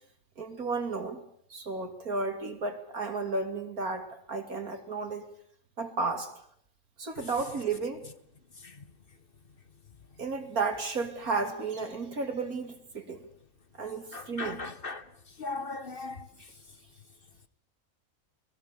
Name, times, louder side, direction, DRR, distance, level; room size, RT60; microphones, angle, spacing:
voice 1, 0.4-1.2 1.5-5.2 5.8-6.3 7.0-8.1 10.2-13.2 13.7-14.7, right 4 dB, 85° right, 3.4 m, -33 dB
voice 2, 14.1-15.0 15.4-16.2, left 3 dB, 40° left, 1.2 m, -37 dB
27.5 x 21.0 x 7.1 m
omnidirectional pair, 1.5 m